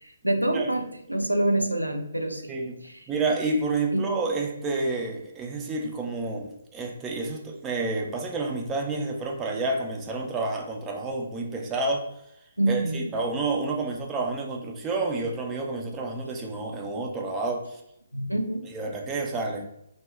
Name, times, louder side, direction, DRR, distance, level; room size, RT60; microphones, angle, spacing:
voice 1, 0.0-2.5 2.8-3.0 3.9-4.1 12.6-13.0 18.1-18.6, right 1 dB, 85° right, 5 dB, 0.4 m, -26 dB
voice 2, 2.5-2.8 3.1-12.0 12.7-17.8 18.7-19.6, right 3 dB, 15° right, 1 dB, 0.4 m, -29 dB
2.2 x 2.1 x 3.5 m, 0.80 s
figure-of-eight pair, 135°, 0 cm